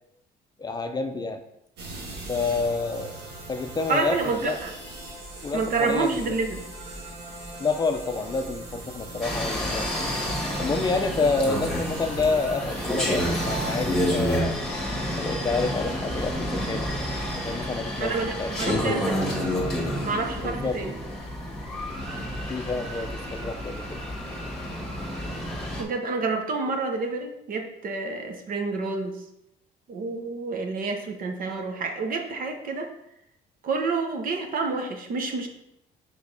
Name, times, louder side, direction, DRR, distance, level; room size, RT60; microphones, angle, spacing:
voice 1, 0.6-1.4 2.3-3.2 3.5-4.6 5.4-6.3 7.6-10.1 10.6-14.6 15.2-17.1 17.4-19.2 20.4-20.8 22.5-24.0, left 3 dB, 25° left, 6 dB, 0.6 m, -29 dB
sound 1, 1.8-14.4, right 2 dB, 85° right, 1.7 m, -40 dB
voice 2, 3.9-4.7 5.5-6.7 18.0-19.5 20.0-21.0 25.8-29.2 29.9-32.9 33.6-35.5, right 4 dB, 55° right, 4 dB, 1.1 m, -28 dB
sound 2, 9.2-25.8, equal, 5° left, 1.6 m, -29 dB
5.1 x 4.4 x 5.4 m, 0.81 s
cardioid pair, 110°, 17 cm